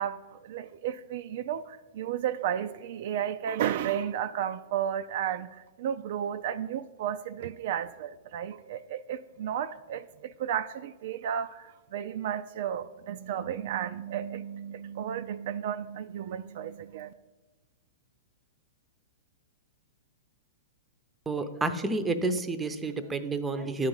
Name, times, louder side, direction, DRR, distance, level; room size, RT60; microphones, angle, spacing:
voice 1, 0.0-5.5 5.8-17.1, right 9 dB, 60° right, 10 dB, 0.3 m, -33 dB
voice 2, 21.3-23.9, right 3 dB, 10° right, 9 dB, 0.6 m, -30 dB
11.0 x 3.8 x 7.1 m, 1.2 s
hypercardioid pair, 135°, 0 cm